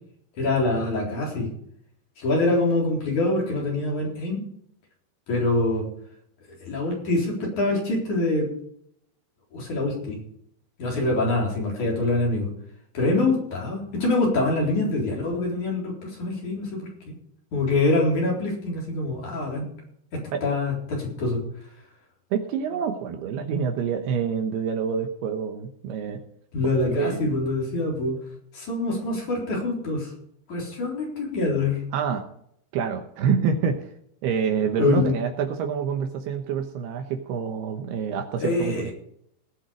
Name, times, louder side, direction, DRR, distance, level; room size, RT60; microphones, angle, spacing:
voice 1, 0.4-1.5 2.2-4.4 5.3-5.9 6.6-8.5 9.5-10.2 10.8-12.5 12.9-16.8 17.1-17.2 17.5-19.6 20.1-21.4 26.5-28.2 28.5-30.1 30.5-31.8 34.7-35.1 38.4-38.9, left 2 dB, 45° left, -2 dB, 5.0 m, -25 dB
voice 2, 22.3-26.2 26.6-27.4 31.9-32.3 32.7-33.9 34.2-38.9, right 6 dB, 70° right, 5 dB, 2.8 m, -27 dB
19.5 x 7.3 x 5.1 m, 0.71 s
omnidirectional pair, 5.2 m